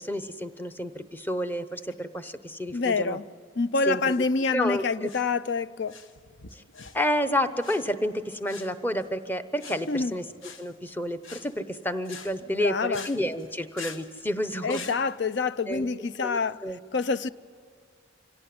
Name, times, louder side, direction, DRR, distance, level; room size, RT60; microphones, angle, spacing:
voice 1, 0.0-3.2 3.9-4.2 4.5-5.1 6.5-6.6 6.9-10.2 10.6-14.8 15.7-15.9 16.2-16.8, equal, 10° left, 0.8 m, -30 dB
voice 2, 2.7-3.2 3.6-5.9 9.9-10.1 12.5-13.1 14.6-16.6 16.9-17.3, left 4 dB, 60° left, 0.5 m, -27 dB
sound 1, 3.9-15.0, left 5 dB, 80° left, 1.2 m, -46 dB
25.5 x 17.5 x 9.5 m
head